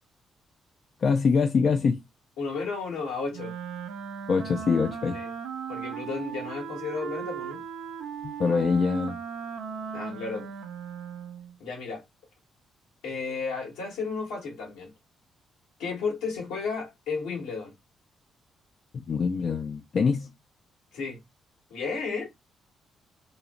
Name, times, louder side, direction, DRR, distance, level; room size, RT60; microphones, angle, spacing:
voice 1, 1.0-2.0 4.3-5.2 8.2-9.2 18.9-20.3, left 5 dB, 55° left, 0.3 m, -24 dB
voice 2, 2.4-3.5 5.1-5.3 5.7-7.6 9.9-10.5 11.6-12.0 13.0-14.9 15.8-17.7 20.9-21.2 21.7-22.3, left 4 dB, 80° left, 1.1 m, -33 dB
Wind instrument woodwind instrument, 3.3-11.5, right 7 dB, 85° right, 0.4 m, -37 dB
2.6 x 2.0 x 2.8 m
hypercardioid pair, 50°, 0 cm